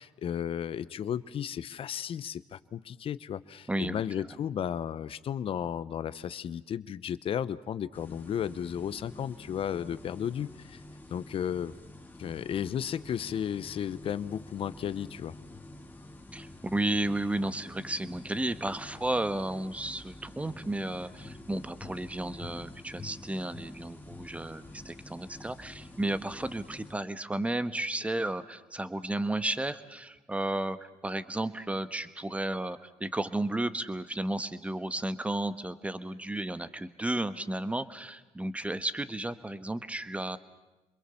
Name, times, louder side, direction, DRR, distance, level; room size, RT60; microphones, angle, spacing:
voice 1, 0.0-10.8 11.1-11.7 12.2-15.4, left 9 dB, 50° left, 16 dB, 0.9 m, -34 dB
voice 2, 3.7-4.0 16.3-40.4, right 1 dB, 10° right, 12 dB, 1.4 m, -33 dB
sound 1, 7.9-26.9, left 2 dB, 15° left, 2.3 m, -48 dB
28.5 x 22.0 x 7.1 m, 1.1 s
supercardioid pair, 75°, 12 cm